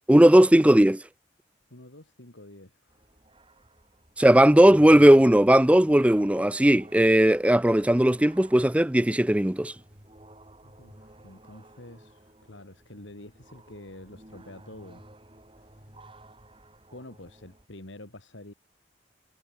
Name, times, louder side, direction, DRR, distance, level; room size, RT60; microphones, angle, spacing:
voice 1, 0.1-1.0 4.2-9.7, right 1 dB, 5° right, 0.5 m, -17 dB
voice 2, 1.7-3.1 4.5-4.6 10.6-15.0 15.6-15.9 16.9-18.5, left 1 dB, 75° left, 3.5 m, -47 dB
sound 1, 2.9-17.7, right 1 dB, 25° right, 6.5 m, -53 dB
head